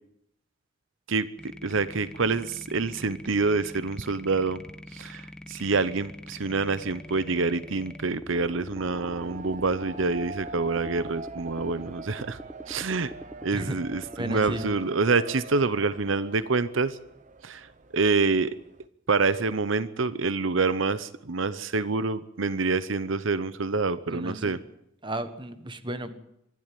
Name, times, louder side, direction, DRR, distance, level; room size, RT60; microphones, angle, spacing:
voice 1, 1.1-4.6 4.9-12.4 12.7-13.1 13.4-17.0 17.4-18.5 19.1-24.6, right 4 dB, 80° right, 15 dB, 0.8 m, -27 dB
sound 1, 1.4-14.7, equal, 5° left, 0.9 m, -44 dB
sound 2, 8.8-18.9, right 3 dB, 40° right, 0.9 m, -44 dB
voice 2, 14.2-14.7 24.1-24.6 25.0-26.1, right 1 dB, 25° right, 10 dB, 1.4 m, -33 dB
25.0 x 12.0 x 9.3 m, 0.78 s
head